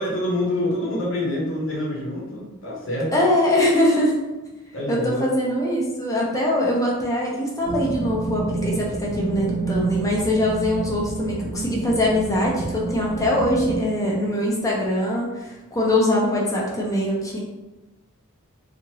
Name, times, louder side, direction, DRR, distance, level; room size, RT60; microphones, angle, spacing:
voice 1, 0.0-3.1 4.7-5.3, left 1 dB, 60° left, -4 dB, 0.8 m, -26 dB
voice 2, 3.1-4.2 4.9-17.4, left 1 dB, 15° left, -3 dB, 0.5 m, -22 dB
sound 1, 7.6-13.8, right 3 dB, 60° right, 0.5 m, -29 dB
2.8 x 2.5 x 2.9 m, 1.1 s
head